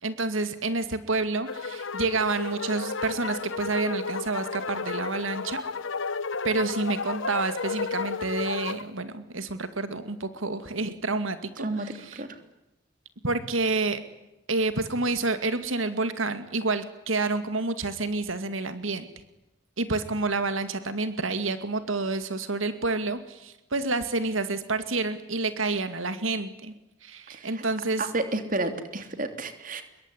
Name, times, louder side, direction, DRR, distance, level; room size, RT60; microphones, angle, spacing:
voice 1, 0.0-5.6 6.4-12.2 13.2-14.0 14.5-19.1 19.8-26.7 27.0-28.1, right 3 dB, 85° right, 11 dB, 2.3 m, -29 dB
sound 1, 1.4-8.8, left 4 dB, 80° left, 1.1 m, -33 dB
voice 2, 11.6-12.4 27.3-27.6 28.0-29.8, right 2 dB, 40° right, 9 dB, 3.2 m, -31 dB
26.5 x 22.5 x 10.0 m, 0.92 s
head